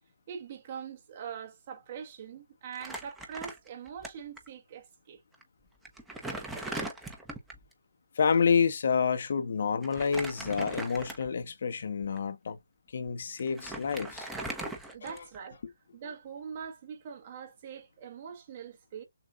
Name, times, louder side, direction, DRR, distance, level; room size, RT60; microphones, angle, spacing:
voice 1, 0.3-5.2 14.9-15.6 15.9-19.0, right 7 dB, 35° right, 1.4 m, -43 dB
Crumpling crinkling, 2.7-4.1 4.4-4.5 5.3-5.4 5.8-7.7 9.8-11.4 12.0-12.2 13.1-13.2 13.4-15.5, right 2 dB, 5° right, 0.8 m, -39 dB
voice 2, 8.1-12.6 12.9-14.3 15.0-15.2, left 6 dB, 50° left, 0.8 m, -28 dB
6.6 x 2.4 x 2.5 m
figure-of-eight pair, 150°, 0 cm